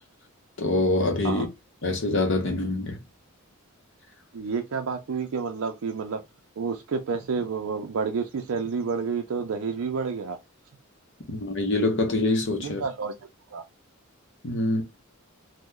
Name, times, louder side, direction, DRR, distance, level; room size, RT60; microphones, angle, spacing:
voice 1, 0.6-1.5 1.8-3.0 11.3-12.8 14.4-14.8, left 2 dB, 55° left, 0.8 m, -25 dB
voice 2, 4.3-6.2 6.6-10.4 12.6-13.2 13.5-13.6, right 5 dB, 70° right, 0.4 m, -29 dB
3.0 x 2.1 x 3.5 m
head